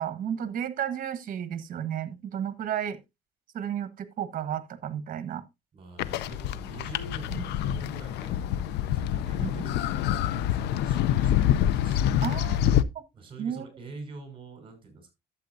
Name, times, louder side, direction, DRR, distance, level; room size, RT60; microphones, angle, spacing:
voice 1, 0.0-3.0 3.5-5.4 7.3-7.4 9.4-9.5 12.2-12.6 13.4-13.7, right 9 dB, 55° right, 1.3 m, -32 dB
voice 2, 5.7-12.2 13.1-15.1, right 3 dB, 30° right, 5.3 m, -46 dB
sound 1, 6.0-12.8, left 11 dB, 80° left, 0.6 m, -26 dB
11.5 x 7.9 x 2.6 m
cardioid pair, 110°, 17 cm